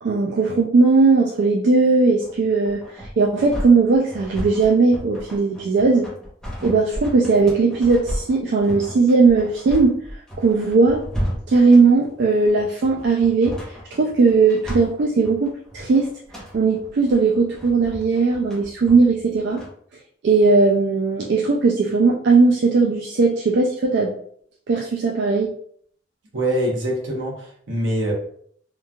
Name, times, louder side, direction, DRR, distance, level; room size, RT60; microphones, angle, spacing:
voice 1, 0.0-6.1 6.6-10.0 10.4-11.0 11.5-13.6 13.9-16.1 16.5-19.6 20.2-24.1 24.7-25.5, right 4 dB, 60° right, -1 dB, 0.4 m, -18 dB
sound 1, 2.2-19.7, equal, 5° left, 0.7 m, -34 dB
voice 2, 26.3-28.1, right 1 dB, 80° right, -2 dB, 0.9 m, -24 dB
3.0 x 2.4 x 2.3 m, 0.62 s
head